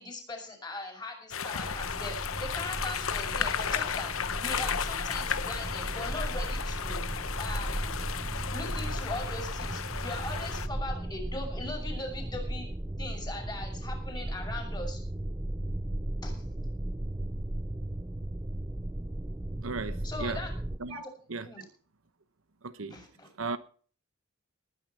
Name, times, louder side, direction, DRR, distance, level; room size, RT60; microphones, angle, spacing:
voice 1, 0.0-7.0 7.4-8.0 8.5-12.7 13.0-15.0 16.2-16.3 20.0-20.5 20.9-21.1 21.4-21.6 22.9-23.3, left 2 dB, 20° left, 5.9 m, -40 dB
sound 1, 1.3-10.7, left 7 dB, 80° left, 0.9 m, -34 dB
sound 2, 1.6-20.8, right 1 dB, 15° right, 0.6 m, -36 dB
voice 2, 19.6-20.5 20.8-21.0 21.3-21.5 22.6-23.0 23.4-23.6, right 4 dB, 75° right, 1.0 m, -36 dB
20.0 x 10.0 x 4.3 m
head